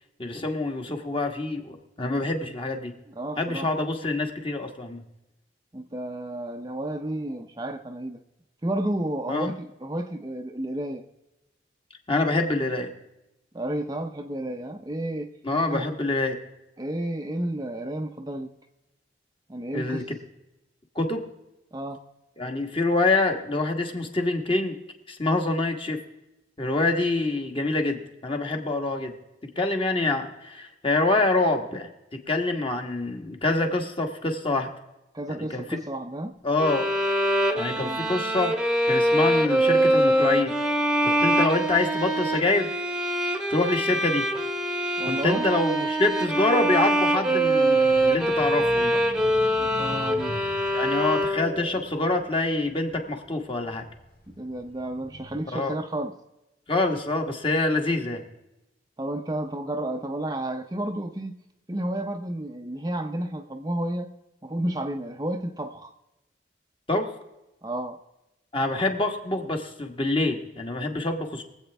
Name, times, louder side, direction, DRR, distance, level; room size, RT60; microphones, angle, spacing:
voice 1, 0.2-2.9 3.4-5.0 9.3-9.5 12.1-12.9 15.4-16.4 19.7-20.0 20.9-21.2 22.4-24.8 25.1-26.0 26.6-29.1 29.6-31.9 32.3-34.7 35.3-35.6 36.4-36.9 37.5-38.5 38.8-40.5 41.0-42.7 43.5-44.3 45.0-49.0 50.7-53.8 55.5-55.8 56.7-58.2 66.9-67.1 68.5-71.4, left 2 dB, 30° left, 3 dB, 1.4 m, -26 dB
voice 2, 3.1-3.7 5.7-8.2 8.6-11.1 13.5-15.3 15.7-15.9 16.8-18.5 19.5-20.0 21.7-22.0 35.1-36.4 37.8-38.0 45.0-45.5 49.6-50.3 54.3-56.1 59.0-61.4 61.7-64.1 64.4-65.9 67.6-68.0, right 1 dB, 20° right, 5 dB, 0.6 m, -31 dB
sound 1, 36.6-51.7, right 1 dB, 5° right, 1.0 m, -24 dB
sound 2, 47.4-53.0 53.5-55.4, left 1 dB, 55° left, 3.6 m, -42 dB
23.5 x 8.1 x 3.4 m, 0.96 s
head